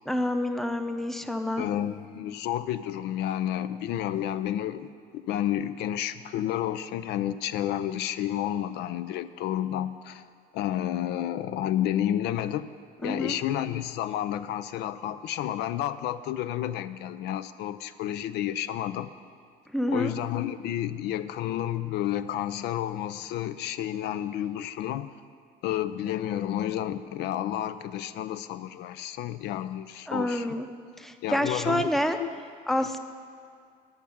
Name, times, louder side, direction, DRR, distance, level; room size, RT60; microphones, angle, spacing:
voice 1, 0.1-1.6 13.0-13.4 19.7-20.1 30.1-30.7 31.0-32.2 32.7-33.0, left 1 dB, ahead, 8 dB, 0.6 m, -28 dB
voice 2, 1.6-10.2 10.5-12.7 13.0-19.1 19.9-25.1 25.6-30.5 31.2-31.8 32.2-32.3, left 11 dB, 80° left, 13 dB, 0.4 m, -30 dB
12.0 x 6.6 x 7.0 m, 2.3 s
cardioid pair, 110°, 17 cm